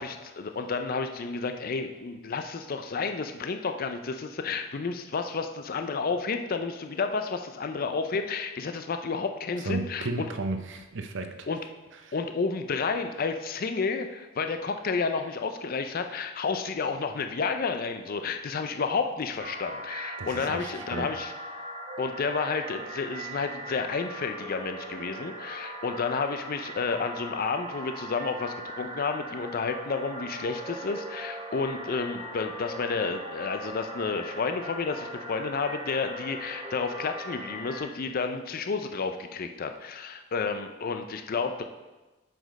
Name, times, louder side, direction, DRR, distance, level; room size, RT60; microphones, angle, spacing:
voice 1, 0.0-10.3 11.5-11.6 12.1-21.3 22.0-41.6, left 4 dB, 45° left, 7 dB, 0.5 m, -31 dB
voice 2, 9.6-11.5 12.0-12.1 20.2-21.1, right 2 dB, 60° right, 7 dB, 0.7 m, -34 dB
sound 1, 19.4-37.8, right 1 dB, 30° right, 2.1 m, -40 dB
7.7 x 5.1 x 5.1 m, 1.1 s
head